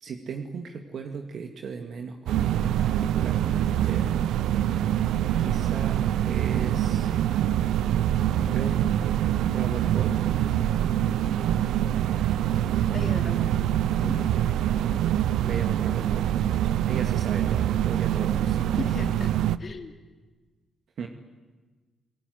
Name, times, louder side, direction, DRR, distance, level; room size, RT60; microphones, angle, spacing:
voice 1, 0.0-4.1 5.4-6.0 6.3-7.1 8.4-8.8 9.5-10.6 15.4-18.7 21.0-21.1, right 5 dB, 65° right, 5 dB, 2.2 m, -37 dB
sound 1, 2.3-19.6, right 11 dB, 85° right, 0.7 m, -25 dB
voice 2, 12.9-13.8 14.0-14.3 18.8-19.3 19.6-19.9, left 4 dB, 45° left, 6 dB, 3.0 m, -37 dB
28.5 x 18.0 x 9.5 m, 1.3 s
cardioid pair, 70°, 0 cm